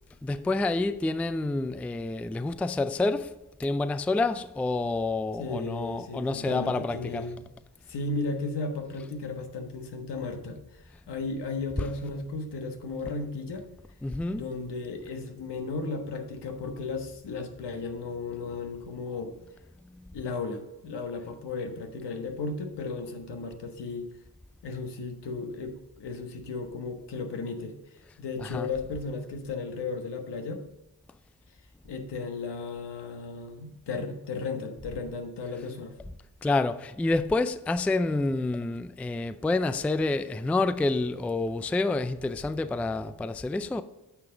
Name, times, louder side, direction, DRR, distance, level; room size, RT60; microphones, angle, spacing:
voice 1, 0.2-7.3 14.0-14.4 28.4-28.7 36.4-43.8, left 2 dB, 5° left, 0.3 m, -28 dB
voice 2, 5.4-7.4 7.9-13.6 14.3-19.3 20.1-24.1 24.6-27.8 28.2-30.6 31.8-36.0, left 3 dB, 75° left, 1.4 m, -35 dB
9.3 x 5.9 x 3.9 m
cardioid pair, 65°, 42 cm